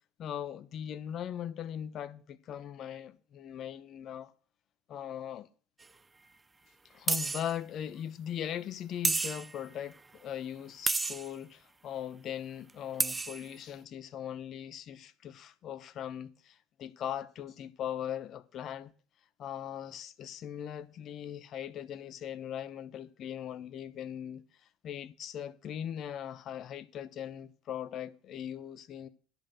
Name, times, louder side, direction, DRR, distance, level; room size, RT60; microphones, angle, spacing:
voice 1, 0.2-4.3 4.9-5.5 6.9-18.9 19.4-24.4 24.8-29.1, left 10 dB, 50° left, 1.0 m, -40 dB
sound 1, 5.8-5.9 7.1-7.5 9.0-9.6 10.9-11.3 12.7-12.8 13.0-13.5, right 3 dB, 20° right, 0.6 m, -30 dB
10.5 x 5.0 x 7.4 m
hypercardioid pair, 65°, 0 cm